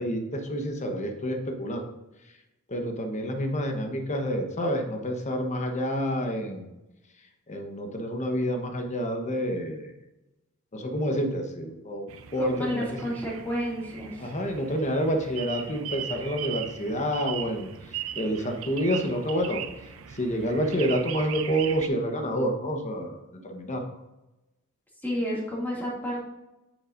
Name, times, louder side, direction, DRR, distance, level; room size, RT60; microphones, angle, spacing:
voice 1, 0.0-1.9 2.7-6.7 7.5-9.9 10.7-13.0 14.2-17.7 18.1-19.6 20.1-23.9, equal, 35° left, 4 dB, 1.1 m, -28 dB
sound 1, 12.1-21.9, right 9 dB, 80° right, 0.6 m, -39 dB
voice 2, 12.4-14.3 25.0-26.2, equal, 10° left, -5 dB, 2.3 m, -31 dB
8.6 x 7.3 x 2.6 m, 0.98 s
head